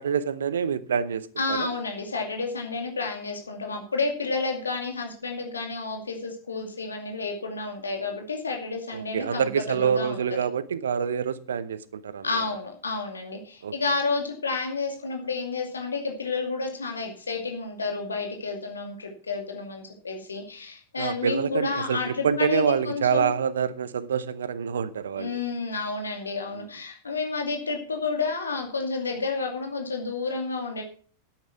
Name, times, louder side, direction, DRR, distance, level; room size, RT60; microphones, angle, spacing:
voice 1, 0.0-1.7 8.9-12.4 13.6-13.7 21.0-25.4 26.5-26.7, right 7 dB, 65° right, 0.8 m, -27 dB
voice 2, 1.4-10.2 12.2-23.3 25.2-30.8, left 4 dB, 75° left, 2.4 m, -30 dB
11.0 x 9.0 x 6.0 m
figure-of-eight pair, 90°, 0 cm